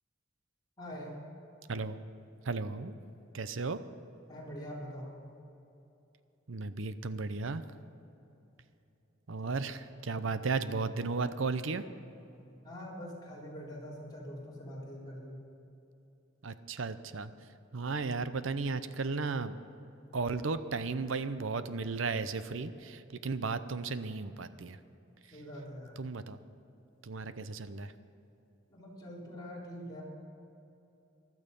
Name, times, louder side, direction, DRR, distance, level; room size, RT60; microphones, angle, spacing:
voice 1, 0.8-1.1 4.3-5.2 9.4-9.6 12.6-15.4 25.3-26.0 28.7-30.0, equal, 20° left, -6 dB, 3.9 m, -44 dB
voice 2, 2.4-2.9 3.3-3.8 6.5-7.6 9.3-11.8 16.4-17.3 17.7-19.6 20.1-24.8 26.0-26.4 27.0-27.9, right 4 dB, 75° right, 12 dB, 0.7 m, -35 dB
15.5 x 12.0 x 5.4 m, 2.9 s
head